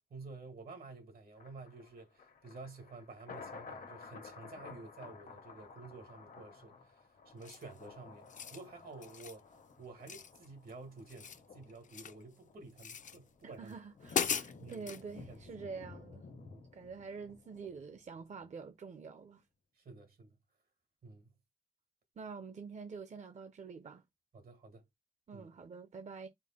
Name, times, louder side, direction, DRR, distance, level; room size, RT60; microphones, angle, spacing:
voice 1, 0.1-9.5 9.8-13.8 14.6-15.7 16.4-16.7 19.8-20.4 21.0-21.3 24.3-24.8 25.3-25.5, right 3 dB, 85° right, 1.5 m, -51 dB
Thunder, 1.4-18.5 18.8-18.9, left 4 dB, 85° left, 1.1 m, -54 dB
sound 1, 7.4-7.8 8.2-8.6 9.0-9.4 10.1-10.7 11.0-12.2 12.8-13.2 13.7-13.8 14.1-15.0, left 7 dB, 60° left, 0.4 m, -38 dB
voice 2, 13.4-16.3 16.7-19.4 22.2-24.0 25.3-26.3, right 5 dB, 55° right, 0.6 m, -47 dB
4.5 x 2.1 x 4.2 m
wide cardioid pair, 100°, 15 cm